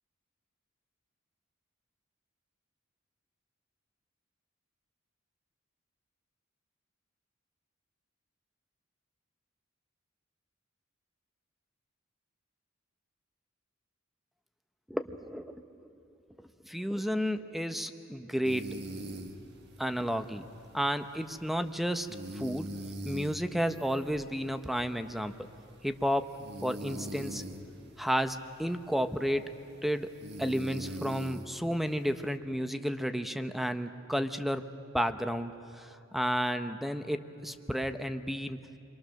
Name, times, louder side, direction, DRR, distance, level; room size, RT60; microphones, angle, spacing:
voice 1, 14.9-15.9 16.6-18.7 19.8-20.5 20.7-22.1 22.3-22.7 23.0-25.3 25.8-26.3 26.6-27.4 28.0-29.6 29.8-30.1 30.4-34.6 34.9-38.6, equal, ahead, 9 dB, 0.8 m, -32 dB
sound 1, 18.4-32.4, right 1 dB, 55° right, 1.6 m, -44 dB
29.5 x 23.0 x 6.5 m, 2.7 s
head